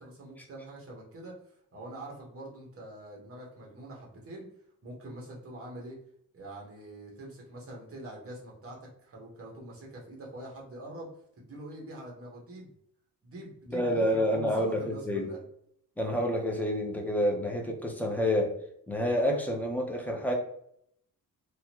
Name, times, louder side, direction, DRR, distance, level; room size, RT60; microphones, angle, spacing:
voice 1, 0.0-4.5 4.8-6.0 6.3-11.1 11.4-12.7 13.2-15.4, right 1 dB, 40° right, -2 dB, 1.1 m, -44 dB
voice 2, 13.7-15.3 16.0-18.5 18.9-20.3, equal, 5° left, 1 dB, 0.5 m, -28 dB
3.5 x 2.1 x 2.9 m, 0.72 s
wide cardioid pair, 150°, 35 cm